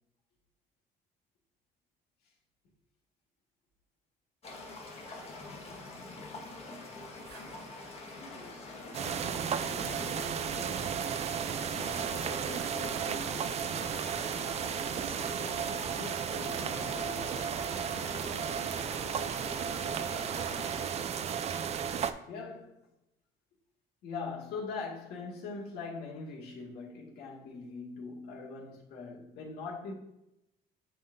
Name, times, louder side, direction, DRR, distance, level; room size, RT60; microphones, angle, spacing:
sound 1, 4.4-20.9, left 2 dB, 35° left, 1.4 m, -45 dB
sound 2, 7.2-7.6 9.8-10.6 12.4-13.2 15.0-16.1, right 6 dB, 85° right, 0.9 m, -53 dB
voice 1, 7.9-18.2, left 3 dB, 55° left, -2 dB, 1.1 m, -49 dB
sound 3, 8.9-22.1, right 8 dB, 40° right, 0.4 m, -34 dB
voice 2, 22.0-22.9 24.0-29.9, left 4 dB, 70° left, -3 dB, 2.0 m, -41 dB
9.8 x 3.7 x 2.6 m, 0.87 s
cardioid pair, 110°, 17 cm